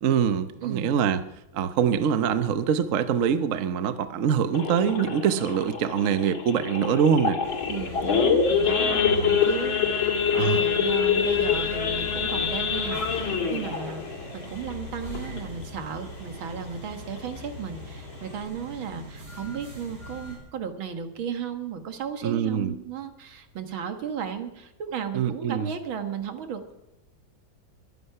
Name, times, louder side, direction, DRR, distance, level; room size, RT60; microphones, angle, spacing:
voice 1, 0.0-1.2 1.5-7.4 9.2-9.3 10.4-10.6 22.2-22.7 25.1-25.7, right 8 dB, 55° right, 11 dB, 0.9 m, -24 dB
voice 2, 0.6-0.9 7.7-26.8, right 7 dB, 85° right, 7 dB, 2.2 m, -35 dB
Idling / Accelerating revving vroom / Sawing, 4.5-15.6 16.0-16.2 16.5-16.6 17.1-17.3 17.8-17.9 18.1-18.4, left 6 dB, 85° left, 2.8 m, -25 dB
sound 1, 7.4-20.4, left 2 dB, 35° right, 7.1 m, -41 dB
22.5 x 9.7 x 5.8 m, 0.91 s
omnidirectional pair, 2.2 m